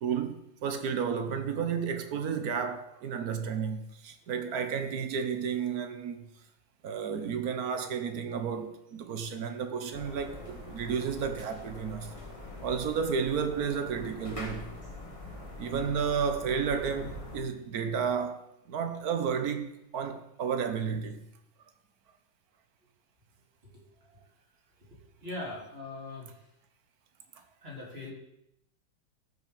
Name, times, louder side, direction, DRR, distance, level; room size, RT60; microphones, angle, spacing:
voice 1, 0.0-6.3 6.8-12.1 12.6-14.7 15.6-18.4 18.7-19.7 19.9-21.2, right 6 dB, 55° right, 1.2 m, -32 dB
sound 1, 9.9-17.4, left 2 dB, 15° left, 1.6 m, -43 dB
voice 2, 24.9-26.4 27.6-28.1, left 2 dB, 30° right, 3.5 m, -41 dB
13.5 x 5.8 x 5.2 m
omnidirectional pair, 2.2 m